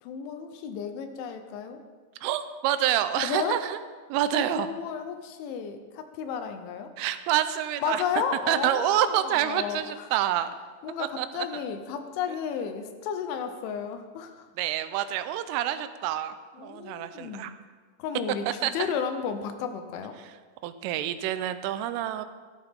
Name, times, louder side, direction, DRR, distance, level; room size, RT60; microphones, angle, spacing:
voice 1, 0.0-1.8 3.2-3.6 4.3-6.9 7.8-10.1 10.8-14.5 16.5-17.5 18.0-20.2, left 7 dB, 80° left, 7 dB, 3.1 m, -33 dB
voice 2, 2.2-3.8 4.1-4.7 7.0-8.0 8.5-10.5 11.2-11.6 14.6-17.5 18.6-18.7 20.6-22.3, right 12 dB, 85° right, 11 dB, 3.2 m, -27 dB
15.0 x 13.0 x 3.6 m, 1.5 s
omnidirectional pair, 5.6 m